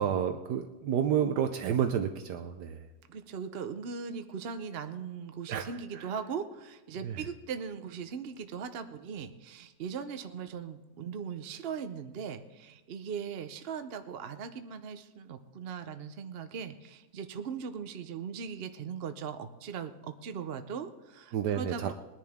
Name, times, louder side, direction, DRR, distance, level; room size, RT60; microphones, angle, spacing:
voice 1, 0.0-2.8 5.5-6.1 7.0-7.2 21.3-21.9, right 9 dB, 75° right, 7 dB, 1.3 m, -30 dB
voice 2, 3.1-21.9, right 6 dB, 55° right, 9 dB, 0.7 m, -39 dB
21.5 x 10.5 x 3.5 m, 1.1 s
omnidirectional pair, 1.8 m